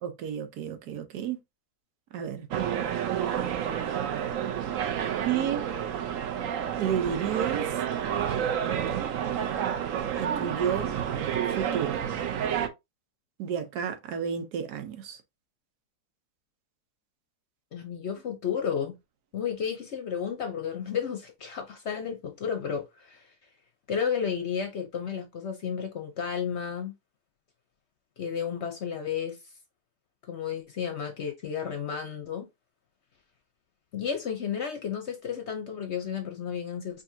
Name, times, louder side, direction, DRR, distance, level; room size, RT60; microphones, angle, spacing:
voice 1, 0.0-1.4 2.1-2.5 5.2-5.7 6.8-7.8 10.2-10.9 11.5-12.0 13.4-15.2, right 8 dB, 80° right, 1.3 m, -31 dB
sound 1, 2.5-12.7, right 9 dB, 65° right, 1.0 m, -29 dB
voice 2, 17.7-19.0 19.3-23.3 23.9-26.9 28.2-29.4 30.3-32.5 33.9-37.0, left 7 dB, 55° left, 0.8 m, -32 dB
5.1 x 2.7 x 2.7 m
omnidirectional pair, 1.7 m